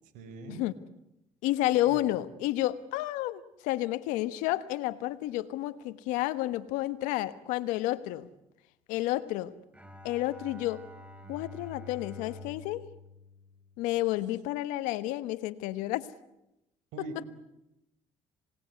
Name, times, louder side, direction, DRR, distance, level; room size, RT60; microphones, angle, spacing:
voice 1, 0.1-0.6 1.9-2.0 16.9-17.3, right 3 dB, 85° right, 10 dB, 5.1 m, -42 dB
voice 2, 1.4-8.3 8.9-9.5 10.0-10.8 11.3-12.9 13.8-16.1 17.0-17.1, left 15 dB, 90° left, 14 dB, 1.3 m, -30 dB
Bowed string instrument, 9.7-14.2, left 2 dB, 10° right, 3.5 m, -48 dB
27.5 x 19.5 x 9.6 m, 0.89 s
supercardioid pair, 80°, 13 cm